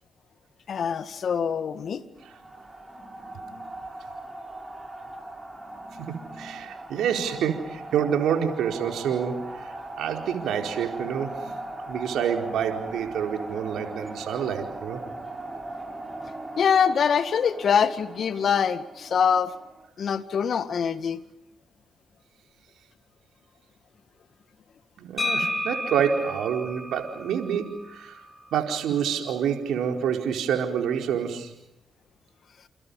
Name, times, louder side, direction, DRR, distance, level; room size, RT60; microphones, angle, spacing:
voice 1, 0.7-2.0 16.6-19.5 20.0-21.2, left 7 dB, 60° left, 11 dB, 2.0 m, -24 dB
sound 1, 2.2-19.9, right 2 dB, 15° right, 7.8 m, -39 dB
voice 2, 6.4-11.4 11.9-15.0 25.0-28.1 28.5-31.5, right 8 dB, 75° right, 3 dB, 4.5 m, -27 dB
sound 2, 25.2-29.0, left 1 dB, 35° left, 5.1 m, -33 dB
29.5 x 28.5 x 5.6 m, 0.85 s
hypercardioid pair, 45°, 0 cm